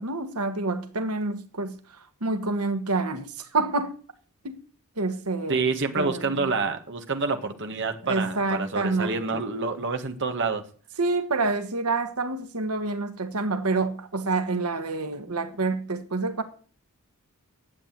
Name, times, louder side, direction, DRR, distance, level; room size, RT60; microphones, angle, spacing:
voice 1, 0.0-1.8 2.2-4.0 4.4-4.6 5.0-5.7 6.0-6.5 8.0-9.4 11.0-16.4, right 3 dB, 90° right, 1.6 m, -27 dB
voice 2, 5.5-10.6, right 4 dB, 55° right, 1.8 m, -27 dB
11.5 x 8.2 x 9.1 m
head